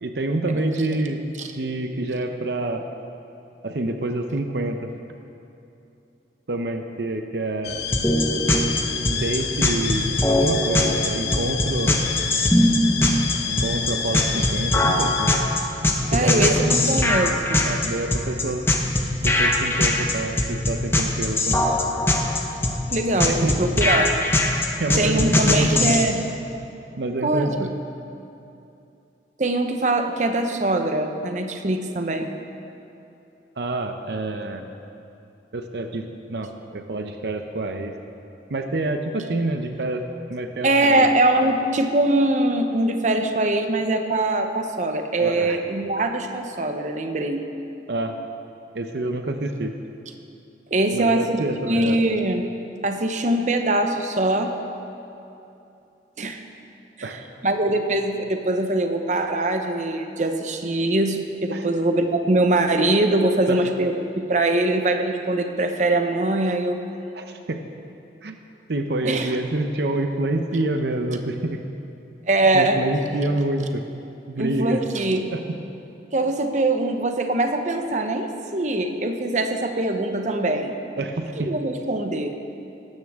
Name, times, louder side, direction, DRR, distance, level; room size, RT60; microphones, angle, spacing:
voice 1, 0.0-1.2 1.5-2.9 3.6-4.9 6.5-7.9 9.1-12.1 13.5-15.3 16.1-16.6 17.6-18.7 19.2-21.6 23.4-23.6 24.8-26.1 27.0-27.7 33.6-34.7 35.5-37.9 38.5-41.1 41.4-41.5 45.2-45.6 47.9-48.2 48.7-49.8 50.9-52.0 57.0-57.2 61.5-61.7 63.5-63.6 67.1-67.6 68.2-68.3 68.7-71.6 72.5-73.9 74.3-74.8 75.3-75.4 81.0-81.5, right 2 dB, 65° right, 6 dB, 0.7 m, -27 dB
sound 1, 7.6-15.4, left 6 dB, 65° left, 0.8 m, -29 dB
sound 2, 7.9-26.0, left 1 dB, 15° left, 0.9 m, -21 dB
voice 2, 16.1-17.7 22.9-24.1 25.0-26.3 27.2-27.7 29.4-32.3 40.6-47.4 50.7-51.4 51.7-52.5 52.8-54.5 56.2-56.4 57.0-57.1 57.4-66.8 69.0-69.4 72.3-72.8 74.4-75.3 76.1-80.7 81.5-82.4, right 2 dB, 40° right, 5 dB, 0.8 m, -22 dB
17.0 x 13.0 x 3.6 m, 2.8 s
head